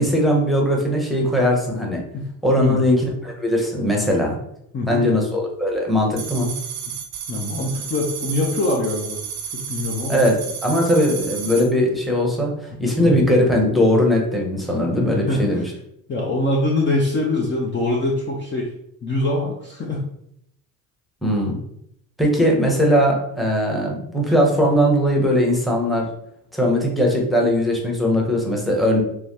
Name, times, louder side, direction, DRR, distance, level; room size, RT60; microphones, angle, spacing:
voice 1, 0.0-2.0 2.4-4.4 4.9-6.5 10.1-12.5 12.8-15.6 21.2-21.6 22.2-26.1 26.5-29.0, equal, ahead, -1 dB, 0.9 m, -19 dB
voice 2, 4.7-5.1 7.3-9.2 9.5-10.3 13.0-13.2 14.9-15.6 16.1-18.7 19.0-20.1, left 2 dB, 25° left, -1 dB, 0.5 m, -23 dB
sound 1, 6.2-11.7, right 7 dB, 60° right, 0.7 m, -32 dB
3.2 x 2.2 x 2.8 m, 0.75 s
hypercardioid pair, 70°, 46 cm